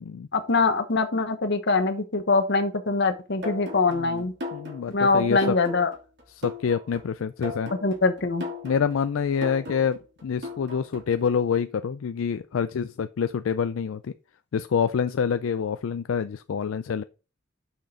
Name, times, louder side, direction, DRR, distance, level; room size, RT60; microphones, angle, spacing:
voice 1, 0.3-4.3 4.9-5.9 7.7-8.4, left 3 dB, 60° left, 1.1 m, -23 dB
sound 1, 3.4-11.2, left 2 dB, 60° right, 2.9 m, -38 dB
voice 2, 3.9-4.2 4.5-5.4 6.4-7.7 8.6-14.1 14.5-17.0, left 6 dB, 80° left, 0.4 m, -27 dB
6.6 x 6.1 x 3.7 m
head